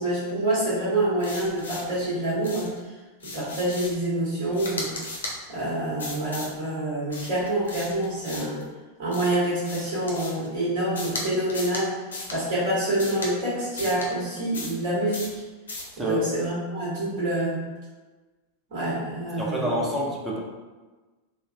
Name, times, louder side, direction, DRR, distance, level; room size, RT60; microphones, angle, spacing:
voice 1, 0.0-2.7 3.3-4.9 5.5-8.6 9.0-12.0 12.3-15.4 16.0-17.6 18.7-19.9, right 1 dB, 55° right, -8 dB, 1.4 m, -27 dB
sound 1, 1.2-2.0 2.4-2.8 3.2-4.1 4.5-5.4 6.0-6.5 7.1-8.6 9.1-10.5 10.9-11.2 11.5-11.8 12.1-12.4 13.0-13.3 13.8-14.1 14.5-14.8 15.1-15.4 15.7-15.9, left 2 dB, 70° left, 0.6 m, -36 dB
voice 2, 15.9-16.2 19.4-20.4, equal, 15° right, -3 dB, 0.5 m, -27 dB
3.1 x 2.2 x 2.5 m, 1.3 s
figure-of-eight pair, 90°, 0 cm